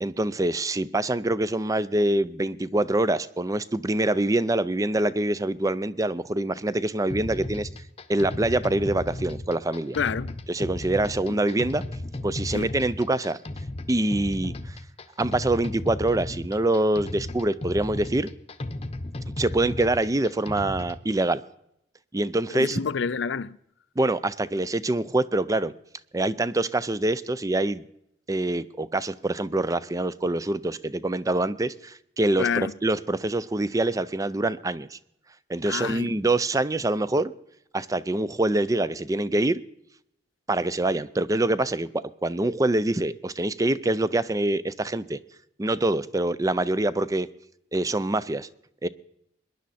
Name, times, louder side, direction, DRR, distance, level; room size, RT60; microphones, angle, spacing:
voice 1, 0.0-7.7 8.1-10.0 10.5-11.8 12.2-13.4 13.9-14.8 15.2-18.3 19.4-21.4 22.1-22.8 24.0-25.7 26.1-27.8 28.3-32.5 32.8-35.0 35.5-37.3 37.7-39.6 40.5-45.2 45.6-47.3 47.7-48.5 48.8-48.9, right 2 dB, 20° right, 0.5 m, -25 dB
sound 1, 7.1-21.0, left 1 dB, 35° left, 0.8 m, -35 dB
voice 2, 9.9-10.4 11.3-11.4 12.5-12.7 22.5-23.6 32.4-32.7 35.7-36.1, left 6 dB, 85° left, 0.5 m, -28 dB
22.0 x 10.5 x 4.2 m
head